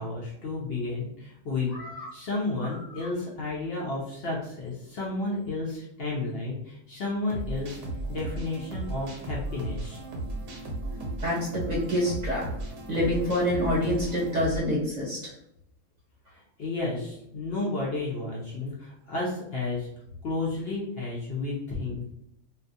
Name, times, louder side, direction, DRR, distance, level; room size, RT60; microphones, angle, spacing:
voice 1, 0.0-1.8 2.1-7.8 8.1-10.0 16.3-19.9 20.2-22.1, left 2 dB, 60° left, -4 dB, 0.7 m, -32 dB
voice 2, 1.7-2.1 11.2-12.4 12.9-15.2, left 1 dB, 40° right, -6 dB, 0.8 m, -27 dB
sound 1, 7.3-14.6, right 2 dB, 70° right, 1.0 m, -35 dB
2.4 x 2.3 x 2.6 m, 0.79 s
omnidirectional pair, 1.3 m